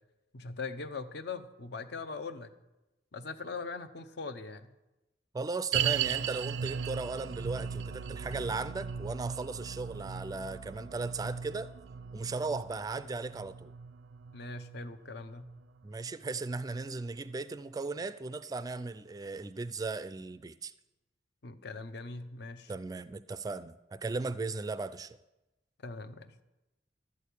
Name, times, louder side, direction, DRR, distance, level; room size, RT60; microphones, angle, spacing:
voice 1, 0.3-2.5 3.1-4.7 14.3-15.5 21.4-22.7 25.8-26.3, left 4 dB, 60° left, 0.8 m, -41 dB
voice 2, 5.3-11.7 12.1-13.7 15.8-20.7 22.7-25.2, right 3 dB, 20° right, 0.3 m, -37 dB
sound 1, 5.7-17.0 17.3-17.4 18.0-18.1, right 8 dB, 80° right, 0.4 m, -37 dB
12.5 x 6.4 x 8.5 m
head